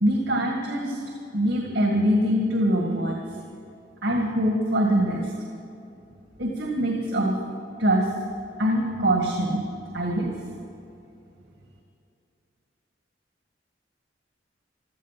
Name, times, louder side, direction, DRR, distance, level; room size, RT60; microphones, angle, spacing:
voice 1, 0.0-1.0 1.3-3.2 4.0-5.3 6.4-7.4 7.8-8.1 8.6-9.6 9.9-10.3, equal, 80° right, 0 dB, 1.9 m, -23 dB
16.5 x 12.5 x 5.9 m, 2.7 s
head